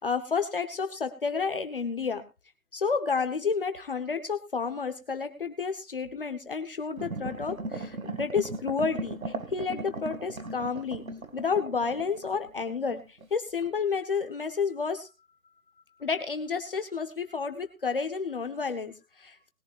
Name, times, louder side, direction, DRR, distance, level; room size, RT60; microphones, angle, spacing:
voice 1, 0.0-2.2 2.7-11.0 11.3-15.1 16.0-19.5, left 5 dB, 40° left, 8 dB, 1.1 m, -30 dB
sound 1, 7.0-13.3 13.6-13.7, right 2 dB, 90° right, 2.4 m, -38 dB
20.5 x 11.0 x 2.5 m, 0.28 s
hypercardioid pair, 175°, 40 cm